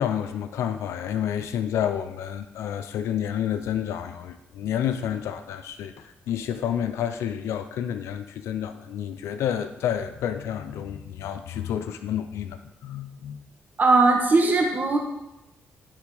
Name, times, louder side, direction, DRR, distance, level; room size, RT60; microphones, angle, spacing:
voice 1, 0.0-5.9 6.3-12.6 12.8-13.4, left 9 dB, 85° left, 9 dB, 0.6 m, -29 dB
voice 2, 13.8-15.0, right 3 dB, 40° right, 1 dB, 1.3 m, -19 dB
10.0 x 3.8 x 4.8 m, 0.91 s
cardioid pair, 75°, 5 cm